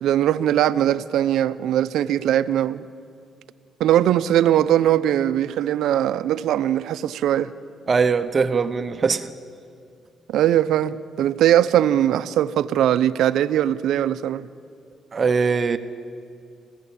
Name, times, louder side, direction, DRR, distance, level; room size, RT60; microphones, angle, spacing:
voice 1, 0.0-2.8 3.8-7.5 10.3-14.5, right 11 dB, 80° right, 0.7 m, -20 dB
voice 2, 7.9-9.3 15.1-15.8, right 5 dB, 40° right, 0.9 m, -21 dB
28.0 x 15.5 x 8.6 m
cardioid pair, 90°, 0 cm